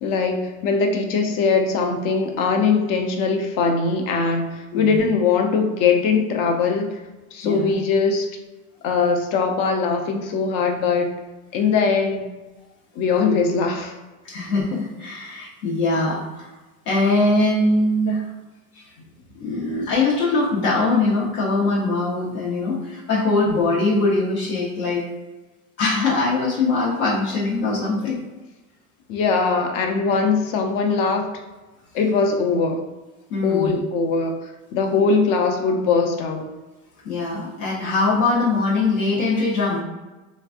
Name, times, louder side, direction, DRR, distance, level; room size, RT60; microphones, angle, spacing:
voice 1, 0.0-7.0 7.3-8.3 8.8-11.1 11.5-12.3 13.0-13.9 29.1-31.3 31.9-32.9 33.4-34.4 34.7-36.5, left 4 dB, 50° left, 3 dB, 0.6 m, -21 dB
voice 2, 14.2-16.5 16.9-18.2 18.7-18.8 19.4-25.1 25.8-28.2 33.3-33.7 37.0-39.8, left 2 dB, 70° left, -6 dB, 1.0 m, -22 dB
3.1 x 2.4 x 2.5 m, 1.1 s
supercardioid pair, 105°, 42 cm